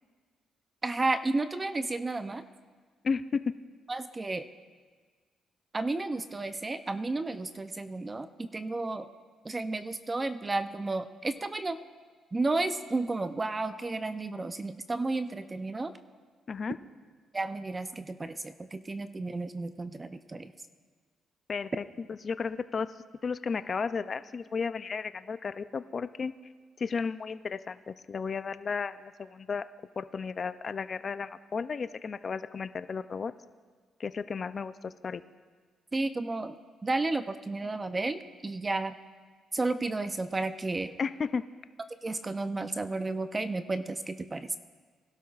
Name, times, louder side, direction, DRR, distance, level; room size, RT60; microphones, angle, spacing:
voice 1, 0.8-2.4 3.9-4.5 5.7-9.1 9.4-11.8 12.3-15.9 17.3-20.5 35.9-36.6 36.8-38.9 39.5-40.9 42.0-44.6, right 2 dB, 25° right, 10 dB, 0.5 m, -32 dB
voice 2, 3.0-3.5 16.5-16.8 21.5-21.7 22.1-22.9 23.2-26.3 26.8-29.6 30.0-33.3 34.0-35.2 41.0-41.4, left 5 dB, 40° left, 13 dB, 0.4 m, -33 dB
20.5 x 12.0 x 2.4 m, 1.5 s
cardioid pair, 90°, 0 cm